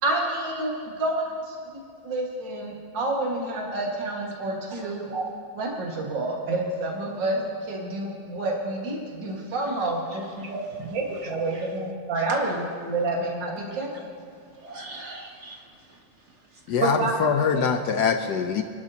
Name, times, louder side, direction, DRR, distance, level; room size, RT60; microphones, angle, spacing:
voice 1, 0.0-0.7 1.0-5.3 5.5-7.4 7.7-13.9 16.8-17.1, right 2 dB, 60° right, -1 dB, 2.4 m, -28 dB
voice 2, 9.8-10.5 11.5-11.7 12.4-12.5 14.6-15.6, right 2 dB, 45° right, 1 dB, 1.1 m, -42 dB
voice 3, 16.7-18.6, left 6 dB, 70° left, 6 dB, 1.0 m, -23 dB
26.5 x 11.5 x 2.8 m, 2.3 s
omnidirectional pair, 2.3 m